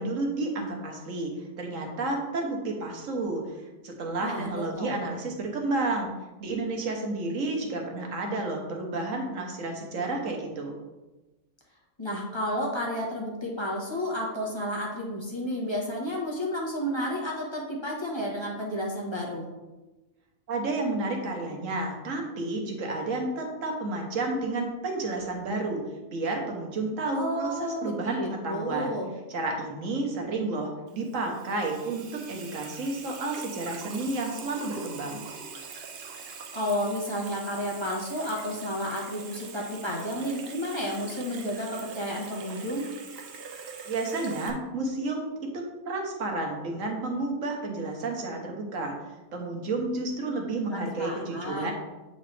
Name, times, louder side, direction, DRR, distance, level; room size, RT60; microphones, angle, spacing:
voice 1, 0.0-3.4 3.8-6.1 6.4-10.8 20.5-25.8 26.1-28.9 29.3-35.3 43.9-45.3 45.5-48.9 49.3-51.7, right 2 dB, 90° right, 1 dB, 1.4 m, -31 dB
voice 2, 4.2-4.9 12.0-19.5 27.1-29.1 36.5-42.9 50.2-50.4 50.7-51.7, equal, 25° left, -3 dB, 1.1 m, -32 dB
Water tap faucet / Sink (filling or washing), 30.9-44.5, right 5 dB, 55° right, 0.8 m, -43 dB
7.7 x 4.0 x 3.3 m, 1.1 s
omnidirectional pair, 1.3 m